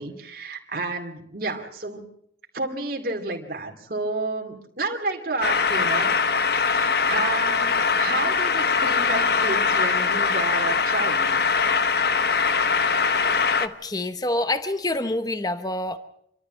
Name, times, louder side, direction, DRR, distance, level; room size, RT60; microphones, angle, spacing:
voice 1, 0.0-2.0 2.5-6.1 6.5-11.3, right 3 dB, 55° right, 2 dB, 2.5 m, -30 dB
sound 1, 5.4-13.7, left 5 dB, 60° left, 1.0 m, -22 dB
voice 2, 13.6-16.0, left 2 dB, 20° left, 10 dB, 0.9 m, -27 dB
27.0 x 13.5 x 7.6 m, 0.73 s
head